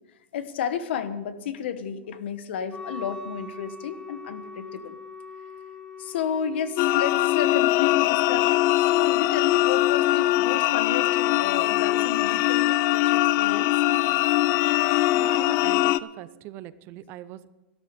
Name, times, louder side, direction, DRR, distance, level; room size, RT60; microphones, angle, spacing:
voice 1, 0.3-5.0 6.0-13.8, left 8 dB, 70° left, 12 dB, 1.1 m, -32 dB
Wind instrument woodwind instrument, 2.7-8.5, left 4 dB, 15° left, 0.8 m, -42 dB
sound 1, 6.8-16.0, left 16 dB, 40° left, 0.3 m, -22 dB
voice 2, 15.1-17.5, right 13 dB, 40° right, 16 dB, 0.6 m, -41 dB
13.5 x 12.5 x 5.1 m, 1.0 s
hypercardioid pair, 140°, 6 cm